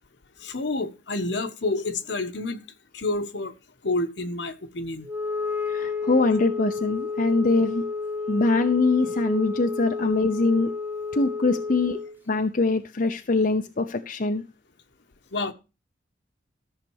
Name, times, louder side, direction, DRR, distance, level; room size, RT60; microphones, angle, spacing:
voice 1, 0.4-2.7 2.9-3.5 3.8-5.1 15.3-15.5, left 2 dB, 70° left, 1.2 m, -29 dB
Wind instrument woodwind instrument, 5.0-12.2, left 4 dB, 10° right, 0.7 m, -31 dB
voice 2, 5.7-7.8 8.3-10.7 11.1-12.0 12.3-14.4, left 3 dB, 50° left, 0.7 m, -23 dB
13.5 x 6.6 x 4.7 m
head